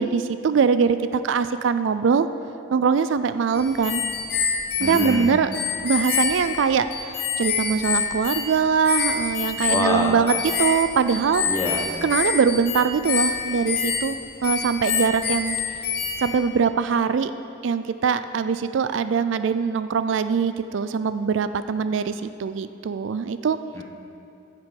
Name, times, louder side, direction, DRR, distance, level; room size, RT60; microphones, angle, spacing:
voice 1, 0.0-2.3 2.7-4.0 4.8-5.5 5.8-6.9 7.4-11.4 12.0-14.2 14.4-15.6 16.2-17.3 17.6-23.6, right 6 dB, 80° right, 12 dB, 0.4 m, -22 dB
sound 1, 3.5-16.5, left 6 dB, 55° left, 1.1 m, -27 dB
voice 2, 4.8-5.3 9.7-10.1 11.5-11.9 23.7-23.8, left 1 dB, 15° left, 0 dB, 1.0 m, -25 dB
15.5 x 5.9 x 5.3 m, 2.7 s
head